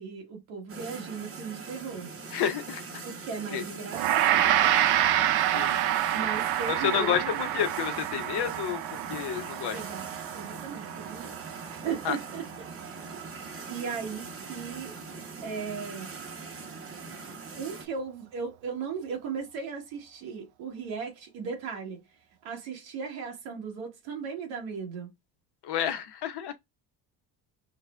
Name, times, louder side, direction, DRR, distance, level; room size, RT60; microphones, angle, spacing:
voice 1, 0.0-2.1 3.0-4.7 6.1-7.4 9.7-10.0 10.3-11.4 11.7-12.4 13.7-14.9 15.4-16.1 17.6-22.0 22.4-25.1, right 6 dB, 80° right, 1.4 m, -37 dB
sound 1, 0.7-17.9, right 4 dB, 30° right, 0.9 m, -42 dB
voice 2, 2.3-3.0 3.5-3.6 5.5-5.8 6.7-9.8 12.0-12.2 25.6-26.5, left 9 dB, 60° left, 0.8 m, -30 dB
Gong, 3.9-13.3, right 12 dB, 55° right, 0.5 m, -28 dB
4.8 x 2.1 x 2.3 m
hypercardioid pair, 60°, 46 cm